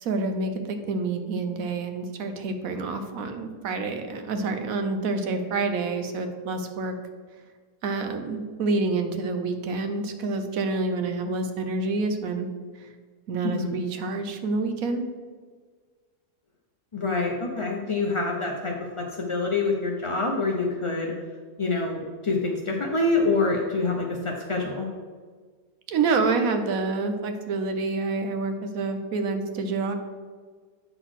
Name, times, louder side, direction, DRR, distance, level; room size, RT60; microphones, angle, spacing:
voice 1, 0.0-6.9 7.8-12.5 13.3-15.0 25.9-29.9, right 3 dB, 65° right, 6 dB, 1.2 m, -27 dB
voice 2, 16.9-21.1 21.6-24.9, left 3 dB, 45° left, 0 dB, 0.3 m, -26 dB
9.0 x 4.0 x 6.3 m, 1.5 s
omnidirectional pair, 1.7 m